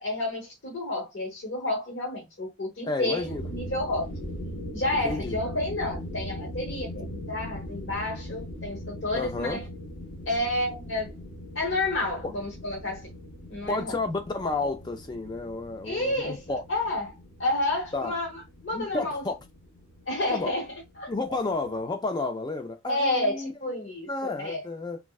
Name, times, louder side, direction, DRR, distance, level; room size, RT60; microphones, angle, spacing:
voice 1, 0.0-4.1 4.7-9.6 10.3-11.1 11.5-13.1 13.5-13.9 15.8-17.1 17.4-19.2 20.1-20.6 21.0-21.1 22.9-24.6, left 1 dB, 60° left, 1.1 m, -30 dB
voice 2, 2.8-3.4 5.0-5.4 9.1-9.6 12.2-12.3 13.7-16.6 17.9-18.1 18.7-19.3 20.3-20.5 21.1-23.5 24.1-25.0, left 3 dB, 20° left, 0.3 m, -31 dB
sound 1, 3.1-21.9, equal, 40° left, 1.0 m, -40 dB
3.4 x 2.2 x 2.3 m
head